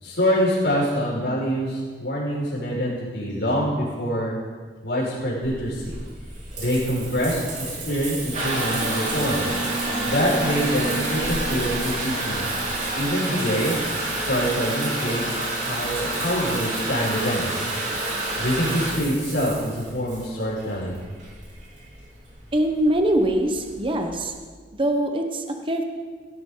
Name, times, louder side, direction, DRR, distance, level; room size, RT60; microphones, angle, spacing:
voice 1, 0.0-4.4 4.8-5.9 6.6-7.4 7.7-9.6 10.1-12.4 12.9-13.8 14.1-17.6 18.4-21.0, equal, 80° left, -5 dB, 5.4 m, -25 dB
Water tap faucet / Bathtub (filling or washing) / Trickle dribble, 5.4-24.3, right 2 dB, 45° right, 3.9 m, -29 dB
voice 2, 22.5-24.3 24.7-25.8, right 1 dB, 30° right, 4 dB, 1.1 m, -23 dB
17.0 x 12.5 x 3.9 m, 1.5 s
head